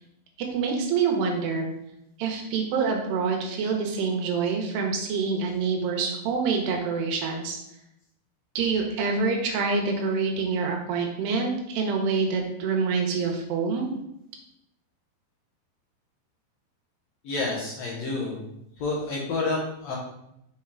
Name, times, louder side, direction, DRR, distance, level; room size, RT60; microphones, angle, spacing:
voice 1, 0.5-1.7 2.2-7.6 8.6-13.9, right 5 dB, 80° right, 2 dB, 3.1 m, -26 dB
voice 2, 17.2-18.4 18.8-20.0, left 3 dB, 65° left, -4 dB, 1.7 m, -29 dB
7.0 x 4.6 x 3.7 m, 0.80 s
omnidirectional pair, 4.8 m